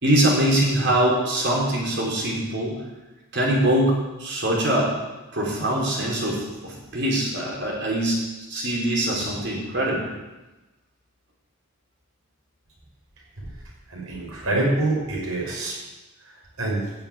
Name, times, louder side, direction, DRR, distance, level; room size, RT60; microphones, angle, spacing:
voice 1, 0.0-2.7 3.3-4.9 5.3-8.2 8.5-10.1, right 1 dB, 50° right, -3 dB, 4.3 m, -23 dB
voice 2, 13.9-15.8 16.6-16.8, right 2 dB, 85° right, -3 dB, 5.7 m, -25 dB
15.0 x 7.0 x 8.9 m, 1.1 s
head